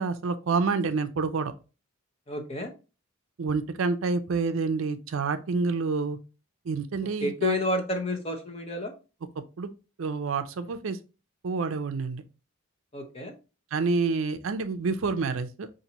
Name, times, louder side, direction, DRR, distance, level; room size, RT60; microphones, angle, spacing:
voice 1, 0.0-1.5 3.4-6.2 6.7-7.6 9.6-9.7 10.0-11.0 11.4-12.2 13.7-15.7, right 4 dB, 70° right, 0.4 m, -28 dB
voice 2, 2.3-2.7 7.2-8.9 12.9-13.3, left 1 dB, 25° left, 0.7 m, -30 dB
5.4 x 2.6 x 2.8 m
head